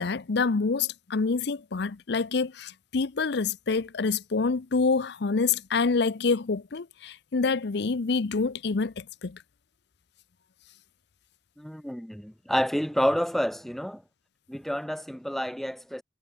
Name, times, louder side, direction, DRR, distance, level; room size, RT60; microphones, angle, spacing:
voice 1, 0.0-9.4, left 4 dB, 65° left, 0.6 m, -27 dB
voice 2, 11.6-14.0 14.5-16.0, equal, ahead, 0.6 m, -29 dB
head